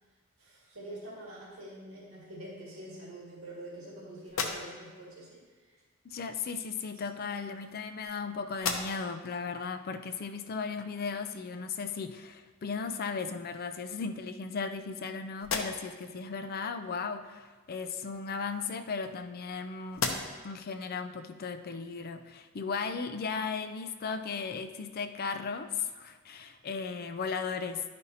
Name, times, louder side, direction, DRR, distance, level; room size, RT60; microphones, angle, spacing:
voice 1, 0.4-5.7, right 1 dB, 85° right, -6 dB, 2.0 m, -46 dB
sound 1, 4.2-5.1 6.2-6.4 7.3-8.2 8.5-9.2 9.7-9.8 12.5-12.6 13.1-13.7 14.3-15.0 15.4-16.1 18.1-19.5 19.9-20.6, left 4 dB, 70° left, 0.7 m, -38 dB
voice 2, 6.0-20.0 20.4-27.8, left 5 dB, 45° left, 8 dB, 0.4 m, -36 dB
11.5 x 5.3 x 2.8 m, 1.4 s
head